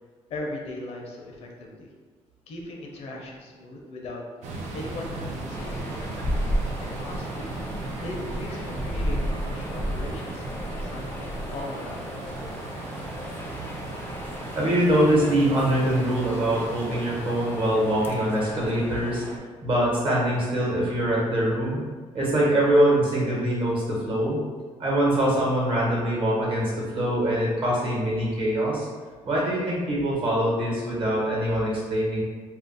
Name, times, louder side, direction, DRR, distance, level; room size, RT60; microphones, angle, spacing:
voice 1, 0.3-1.9 2.5-4.2 4.7-6.2 6.8-7.6 8.0-12.3, left 2 dB, 65° left, -1 dB, 0.6 m, -38 dB
sound 1, 4.4-18.6, right 2 dB, 80° right, 0.5 m, -37 dB
sound 2, 5.5-19.4, equal, 20° left, 0.4 m, -34 dB
voice 2, 14.5-19.2 19.6-21.8 22.1-24.4 24.8-28.9 29.2-32.2, right 1 dB, 50° right, -5 dB, 1.1 m, -23 dB
2.4 x 2.0 x 3.9 m, 1.5 s
cardioid pair, 105°, 12 cm